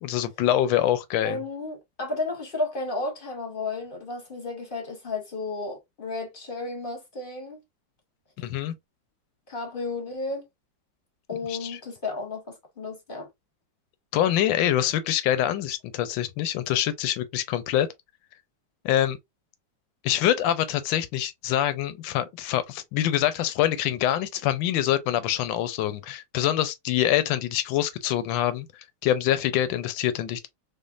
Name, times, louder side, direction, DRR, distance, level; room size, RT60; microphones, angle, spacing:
voice 1, 0.0-1.4 8.4-8.7 11.5-11.8 14.1-17.9 18.8-19.2 20.0-28.7 29.0-30.5, left 12 dB, 80° left, 1.3 m, -25 dB
voice 2, 1.2-7.6 9.5-10.5 11.3-13.3, left 3 dB, 40° left, 0.7 m, -33 dB
5.2 x 2.1 x 2.4 m
omnidirectional pair, 2.1 m